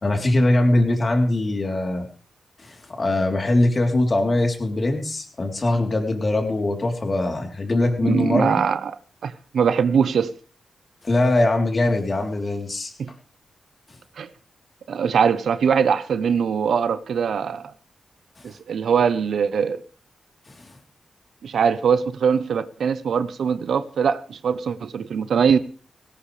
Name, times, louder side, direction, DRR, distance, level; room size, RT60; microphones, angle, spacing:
voice 1, 0.0-2.1 2.6-8.6 11.0-12.9 18.4-18.5 20.5-20.7, left 2 dB, 40° left, 3.6 m, -22 dB
voice 2, 8.0-9.0 9.2-10.3 13.0-13.1 14.2-14.3 14.9-17.7 18.4-19.8 21.4-25.6, right 6 dB, 80° right, 0.8 m, -22 dB
18.5 x 17.0 x 3.4 m
cardioid pair, 85°, 0 cm